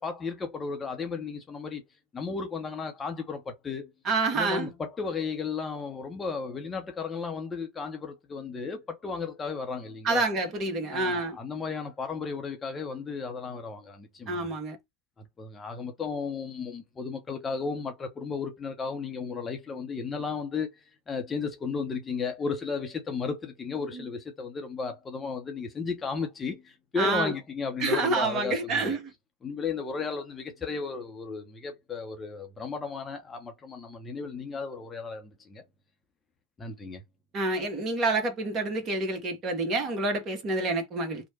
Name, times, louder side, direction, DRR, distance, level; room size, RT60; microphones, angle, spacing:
voice 1, 0.0-1.8 2.1-3.9 4.3-10.2 10.9-14.5 15.2-20.7 21.1-29.0 29.4-35.6 36.6-37.0, left 5 dB, 20° left, 0.7 m, -34 dB
voice 2, 4.0-4.7 10.0-11.4 14.3-14.8 23.9-24.0 27.0-27.3 27.8-29.1 37.3-41.3, right 3 dB, 35° right, 1.1 m, -28 dB
3.0 x 2.1 x 4.1 m
figure-of-eight pair, 90°, 0 cm